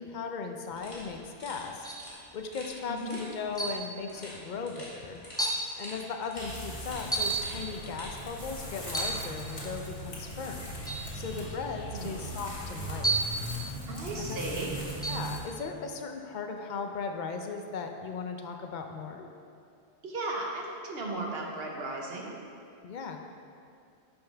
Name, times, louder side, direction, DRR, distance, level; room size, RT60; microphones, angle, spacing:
voice 1, 0.0-1.9 2.3-5.2 5.8-10.7 11.1-13.1 14.2-14.4 15.1-19.3 22.8-23.2, left 5 dB, 50° left, 4 dB, 0.7 m, -37 dB
sound 1, 0.7-8.2, equal, 30° left, 2.2 m, -47 dB
sound 2, 1.8-2.1 3.6-3.9 4.7-4.8 5.4-5.7 7.1-7.5 8.9-9.3 10.9-11.1 13.0-13.4 15.0-15.3, right 2 dB, 5° left, 0.5 m, -30 dB
voice 2, 2.9-3.2 11.4-11.5 11.9-12.2 13.9-14.8 20.0-22.3, right 2 dB, 65° right, -1 dB, 1.3 m, -36 dB
sound 3, 6.3-15.4, equal, 70° left, 1.8 m, -39 dB
11.0 x 5.6 x 3.4 m, 2.4 s
omnidirectional pair, 1.1 m